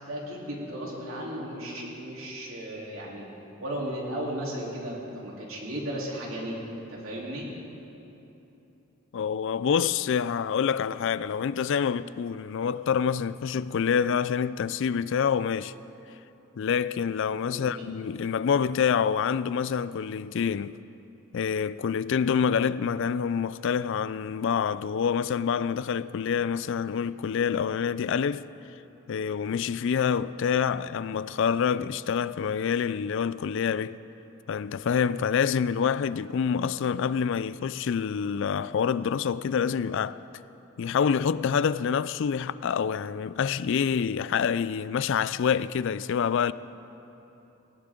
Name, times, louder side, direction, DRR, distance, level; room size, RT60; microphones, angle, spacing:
voice 1, 0.0-3.2 3.6-6.5 6.9-7.4 17.5-17.8, right 1 dB, 80° right, 3.5 m, -35 dB
voice 2, 9.1-15.7 16.6-20.8 21.3-28.5 29.1-34.0 34.5-40.2 40.8-46.5, left 7 dB, 65° left, 0.4 m, -27 dB
18.5 x 18.0 x 3.8 m
head